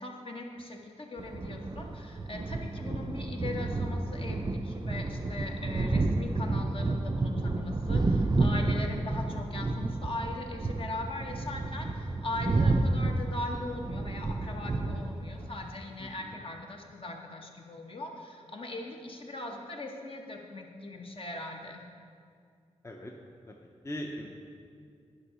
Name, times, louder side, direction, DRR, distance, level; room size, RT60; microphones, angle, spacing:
voice 1, 0.0-21.8, left 2 dB, 50° left, 1 dB, 1.0 m, -40 dB
sound 1, 1.2-15.5, right 2 dB, 35° right, 0.4 m, -30 dB
voice 2, 16.0-16.4 22.8-23.1 23.5-24.3, left 1 dB, 25° left, 0 dB, 0.6 m, -41 dB
9.8 x 5.4 x 5.0 m, 2.3 s
wide cardioid pair, 100°, 12 cm